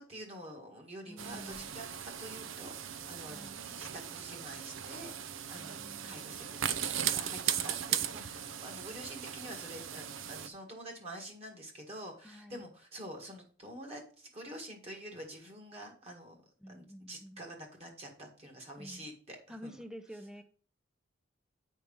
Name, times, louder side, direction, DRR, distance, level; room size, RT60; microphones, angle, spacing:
voice 1, 0.0-3.4 3.8-16.3 16.7-19.8, right 1 dB, 30° right, 2 dB, 1.7 m, -47 dB
voice 2, 1.1-1.7 3.3-3.6 5.6-6.6 12.2-12.7 16.6-17.4 18.8-19.1 19.5-20.4, equal, 5° right, 9 dB, 0.6 m, -49 dB
sound 1, 1.2-10.5, right 9 dB, 85° right, 0.6 m, -38 dB
9.2 x 4.5 x 5.4 m, 0.42 s
head